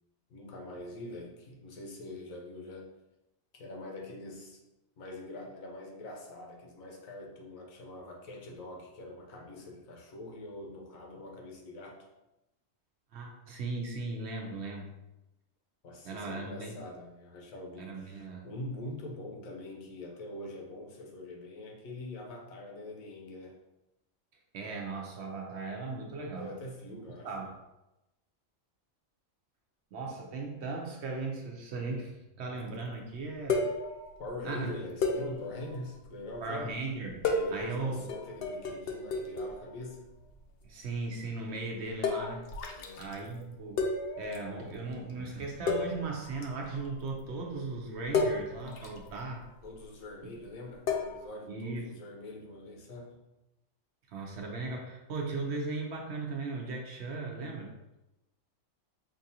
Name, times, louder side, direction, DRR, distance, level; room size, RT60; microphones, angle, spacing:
voice 1, 0.3-2.9 3.5-4.6 5.0-12.0 15.8-23.6 26.4-27.5 34.2-36.8 37.2-40.1 42.7-43.1 49.1-49.2 49.6-53.2, left 1 dB, 85° left, 0 dB, 1.2 m, -43 dB
voice 2, 13.1-15.0 16.0-16.8 17.8-18.5 24.5-26.5 27.2-27.5 29.9-33.7 34.4-34.8 36.4-37.2 37.5-38.0 40.6-42.4 43.0-49.4 50.2-50.3 51.5-51.8 54.1-57.7, right 3 dB, 65° right, 1 dB, 0.8 m, -37 dB
sound 1, 32.7-32.8 33.1-33.2 33.5-34.3 35.0-36.4 37.1-39.8 40.1-40.5 40.8-40.9 42.0-43.3 43.8-44.5 44.7-44.9 45.4-45.5 45.7-47.3 48.0-49.7 50.9-51.3, left 3 dB, 65° left, 0.6 m, -33 dB
5.2 x 2.4 x 2.7 m, 0.95 s
omnidirectional pair, 1.4 m